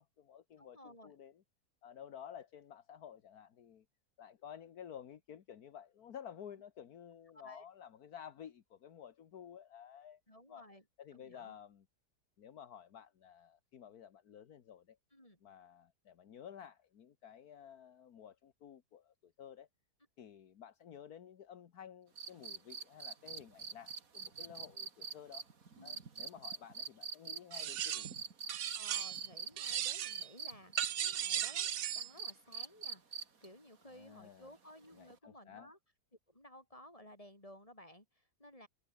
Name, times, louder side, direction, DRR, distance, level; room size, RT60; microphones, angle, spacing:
voice 1, 0.0-1.4 1.8-3.9 4.2-10.2 10.5-10.7 11.0-11.9 12.4-15.0 15.4-19.7 20.2-25.5 25.8-28.1 33.9-34.5 34.9-35.7, left 9 dB, 70° left, 1.7 m, -53 dB
voice 2, 0.6-1.1 7.4-7.7 10.3-10.8 11.1-11.6 15.1-15.4 25.8-26.0 28.7-35.8 36.3-38.7, left 1 dB, 20° left, 7.1 m, -56 dB
sound 1, 22.2-29.8 30.1-33.5 35.1-35.2, right 5 dB, 60° right, 2.5 m, -43 dB
sound 2, 27.5-28.2 28.5-29.3 29.6-30.3 30.8-32.1, right 11 dB, 85° right, 0.5 m, -37 dB
omnidirectional pair, 1.7 m